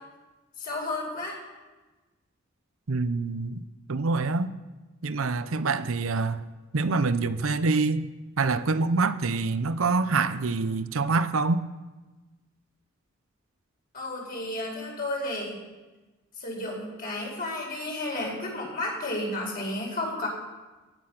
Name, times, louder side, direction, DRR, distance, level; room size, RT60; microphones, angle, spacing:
voice 1, 0.6-1.4 13.9-15.6 16.4-20.3, left 1 dB, 45° left, -2 dB, 4.8 m, -32 dB
voice 2, 2.9-3.6 3.9-4.5 5.0-6.4 6.7-8.1 8.4-11.6, right 3 dB, 90° right, 13 dB, 0.7 m, -26 dB
16.5 x 9.9 x 5.9 m, 1.2 s
head